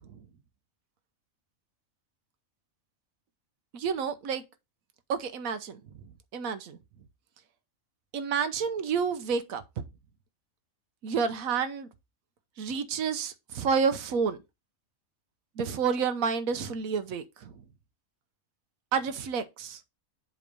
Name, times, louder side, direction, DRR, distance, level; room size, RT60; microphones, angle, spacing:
voice 1, 3.7-4.4 5.1-5.8 6.3-6.8 8.1-9.6 11.0-11.9 12.6-14.4 15.6-17.5 18.9-19.8, right 6 dB, 80° right, 1.2 m, -29 dB
7.7 x 3.2 x 5.2 m
omnidirectional pair, 1.5 m